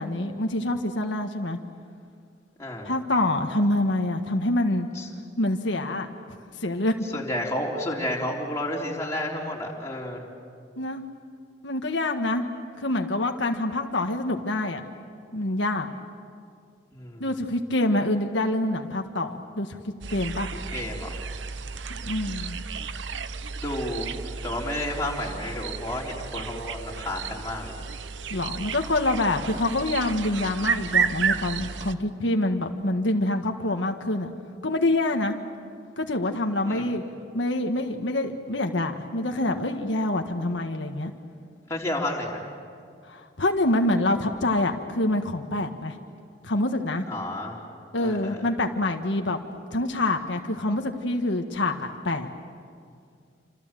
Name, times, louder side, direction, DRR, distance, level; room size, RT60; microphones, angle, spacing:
voice 1, 0.0-1.6 2.8-4.9 5.4-6.1 6.6-6.9 10.8-11.0 11.6-12.4 12.8-14.8 15.3-15.9 17.2-19.8 20.1-20.5 21.9-22.6 28.3-34.3 34.6-35.3 36.0-37.0 37.3-41.1 43.0-46.0 46.4-47.1 47.9-49.4 49.7-52.3, left 1 dB, 85° left, 4 dB, 1.6 m, -26 dB
voice 2, 2.6-2.9 4.9-5.1 7.1-10.2 16.9-17.3 20.7-21.2 23.5-24.1 24.4-27.8 36.7-36.9 41.7-42.5 47.1-47.6 48.0-48.4, left 1 dB, 15° left, -3 dB, 3.9 m, -31 dB
sound 1, 20.0-32.0, right 6 dB, 85° right, 0.9 m, -32 dB
28.0 x 27.0 x 7.7 m, 2.2 s
head